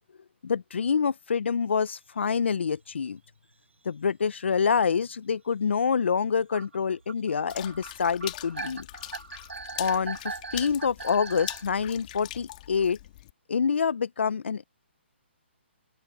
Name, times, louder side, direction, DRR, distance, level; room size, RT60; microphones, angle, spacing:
voice 1, 0.4-3.2 3.8-8.9 9.8-13.0 13.5-14.6, left 6 dB, 70° left, 0.7 m, -26 dB
sound 1, 2.6-2.7 3.0-3.2 3.9-4.0 4.2-4.3 5.0-5.2 5.7-5.8 6.5-11.7, right 4 dB, 85° right, 7.8 m, -40 dB
Water / Splash splatter, 7.5-13.3, left 15 dB, 40° left, 2.2 m, -41 dB
open air
hypercardioid pair, 145°, 6 cm